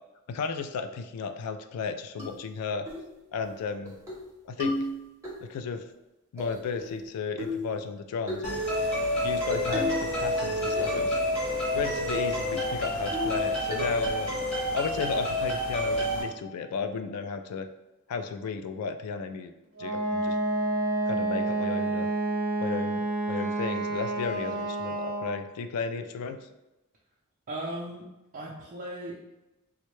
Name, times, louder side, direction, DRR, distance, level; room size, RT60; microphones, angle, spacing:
voice 1, 0.3-2.9 3.3-4.0 4.5-4.9 5.4-5.8 6.3-8.6 9.2-11.2 11.7-14.4 14.7-17.7 18.1-19.5 19.8-20.4 21.1-22.1 22.6-23.0 23.3-26.4, left 5 dB, 85° left, 9 dB, 0.3 m, -34 dB
sound 1, 2.2-2.3 2.9-3.1 3.4-3.5 3.9-4.2 4.6-5.3 6.4-7.0 7.4-7.7 8.3-8.5 9.5-10.1 10.4-11.1 11.4-11.5 11.9-12.1 12.5-12.6 13.1-13.4 13.7-14.1, left 1 dB, 15° right, 0.8 m, -33 dB
sound 2, 8.4-16.2, left 1 dB, 30° left, 1.4 m, -29 dB
Wind instrument woodwind instrument, 19.8-25.5, right 2 dB, 65° right, 0.7 m, -29 dB
voice 2, 27.5-29.3, right 1 dB, 40° right, -3 dB, 0.4 m, -38 dB
3.6 x 2.1 x 3.1 m, 0.97 s
head